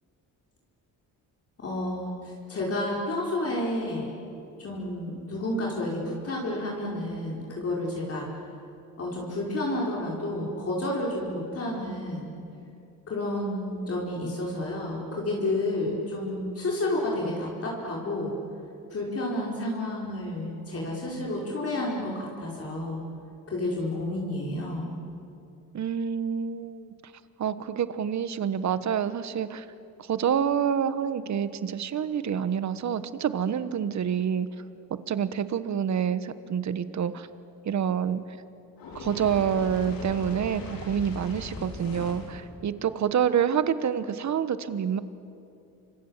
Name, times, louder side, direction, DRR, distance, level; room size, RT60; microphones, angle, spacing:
voice 1, 1.6-4.1 4.6-8.3 9.0-12.3 13.1-18.3 18.9-23.0 23.5-24.9, left 1 dB, 40° left, -3 dB, 5.1 m, -30 dB
voice 2, 25.7-26.9 27.4-29.6 30.1-34.5 34.9-37.3 37.6-38.2 38.9-45.0, right 8 dB, 50° right, 13 dB, 1.3 m, -27 dB
Fire, 38.8-42.4, left 3 dB, 75° left, 4.5 m, -39 dB
28.0 x 25.5 x 7.5 m, 2.7 s
cardioid pair, 110°, 35 cm